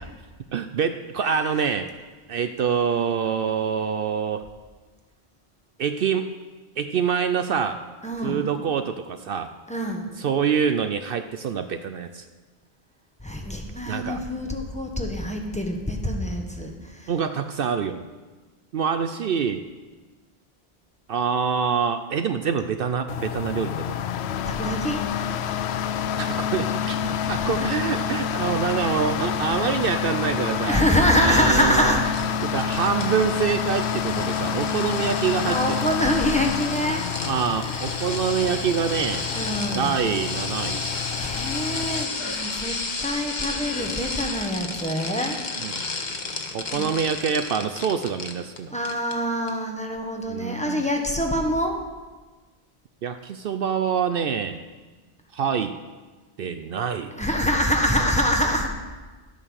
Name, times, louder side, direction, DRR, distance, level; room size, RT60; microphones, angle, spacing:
voice 1, 0.5-1.9 2.3-4.4 5.8-6.3 6.8-7.8 8.2-9.5 10.2-12.2 13.9-14.2 17.1-18.0 18.7-19.6 21.1-24.1 26.2-30.8 31.2-32.0 32.4-35.8 37.2-39.3 39.7-40.9 45.6-45.9 46.5-48.7 50.3-50.9 53.0-54.6 55.3-55.8 56.4-57.1, right 7 dB, 65° right, 9 dB, 0.8 m, -26 dB
voice 2, 8.0-8.5 9.7-10.1 13.2-17.1 24.4-25.0 27.2-27.7 30.2-32.0 34.9-37.1 37.4-37.5 38.0-38.1 39.2-40.3 41.2-45.4 46.7-46.9 48.7-51.8 57.1-58.7, equal, 5° left, 2 dB, 1.2 m, -25 dB
sound 1, 23.1-42.0, left 8 dB, 90° left, 0.9 m, -28 dB
sound 2, 32.1-48.6 48.8-49.1 49.5-49.6, left 3 dB, 45° left, 1.2 m, -33 dB
sound 3, 40.8-41.0 42.2-42.5 43.3-44.1 45.3-45.4, left 3 dB, 70° left, 1.2 m, -39 dB
12.0 x 8.9 x 6.4 m, 1.3 s
omnidirectional pair, 1.1 m